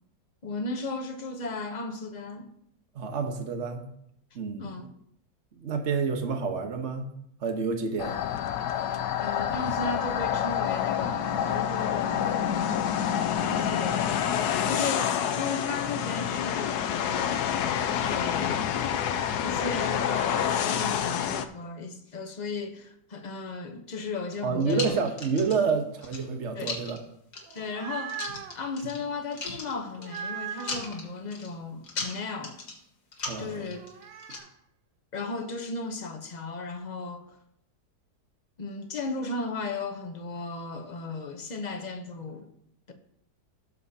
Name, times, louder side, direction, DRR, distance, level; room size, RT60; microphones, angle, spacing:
voice 1, 0.4-2.5 4.6-4.9 9.2-12.6 13.4-17.4 18.0-18.6 19.4-24.9 26.6-26.7 27.5-28.2 28.5-32.6 33.4-33.8 35.1-37.4 38.6-42.5, left 3 dB, 35° left, 0.7 m, -35 dB
voice 2, 2.9-3.9 4.3-4.8 5.6-7.1 7.4-8.2 24.4-27.0 33.3-33.7 34.3-34.4, right 5 dB, 45° right, 1.3 m, -29 dB
sound 1, 8.0-21.4, left 9 dB, 70° left, 1.1 m, -28 dB
sound 2, 24.3-25.7 26.0-27.0 27.3-27.7 28.1-29.0 29.3-30.3 30.6-31.5 31.8-32.8 33.1-34.4, left 3 dB, 85° left, 2.6 m, -37 dB
sound 3, 27.4-28.6 30.0-31.0 33.8-34.5, right 8 dB, 85° right, 1.5 m, -38 dB
17.0 x 7.1 x 2.8 m
omnidirectional pair, 2.0 m